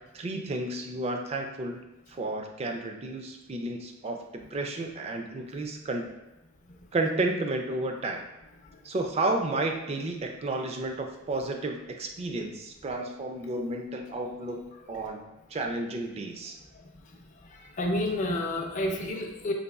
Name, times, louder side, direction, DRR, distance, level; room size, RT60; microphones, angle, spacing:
voice 1, 0.1-1.8 2.1-6.1 6.9-8.2 8.8-16.6, right 2 dB, 30° right, 3 dB, 0.3 m, -32 dB
voice 2, 17.6-19.5, left 1 dB, 35° left, 1 dB, 0.4 m, -30 dB
3.9 x 2.9 x 2.3 m, 1.0 s
head